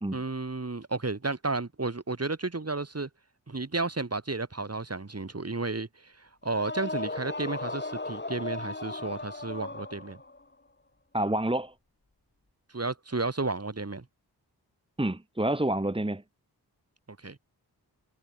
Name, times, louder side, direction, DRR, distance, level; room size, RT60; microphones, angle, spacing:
voice 1, 0.1-3.1 3.5-10.2 12.7-14.1 17.2-17.4, right 3 dB, 35° right, 5.4 m, -32 dB
sound 1, 6.4-10.4, left 2 dB, 25° left, 3.3 m, -36 dB
voice 2, 11.1-11.7 15.0-16.2, right 1 dB, 15° right, 2.0 m, -28 dB
cardioid pair, 65°, 40 cm